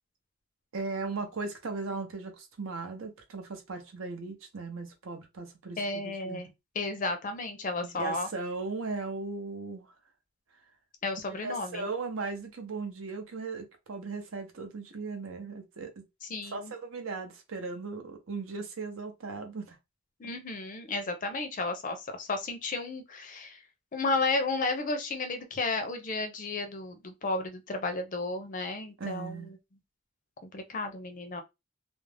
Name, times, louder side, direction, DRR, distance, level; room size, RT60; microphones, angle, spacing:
voice 1, 0.7-6.5 7.8-9.9 11.3-16.0 16.5-19.8 29.0-29.5, right 4 dB, 70° right, 0.7 m, -37 dB
voice 2, 5.8-6.5 6.7-8.3 11.0-11.8 16.2-16.7 20.2-23.6 23.9-29.6 30.4-31.4, left 3 dB, 35° left, 0.5 m, -33 dB
2.4 x 2.0 x 3.2 m
head